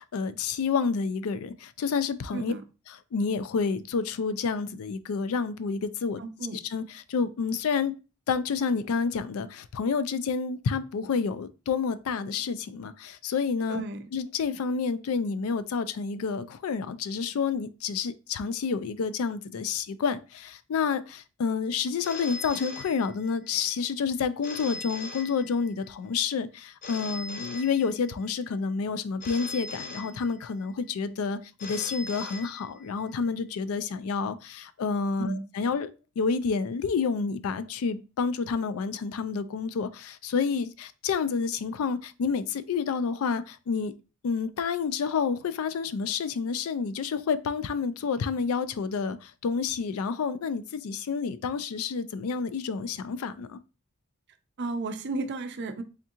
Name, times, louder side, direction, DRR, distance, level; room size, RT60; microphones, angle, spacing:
voice 1, 0.0-2.5 2.9-6.2 6.5-7.9 8.3-13.8 14.1-35.9 36.2-43.9 44.2-53.6, left 5 dB, 75° left, 0.4 m, -29 dB
voice 2, 6.2-6.6 13.7-14.0 35.2-35.4 54.6-55.8, right 3 dB, 50° right, 0.5 m, -33 dB
Telephone, 22.0-23.5 24.4-25.9 26.8-28.3 29.2-30.7 31.6-33.1, left 3 dB, 40° left, 0.6 m, -40 dB
3.5 x 3.5 x 2.8 m
head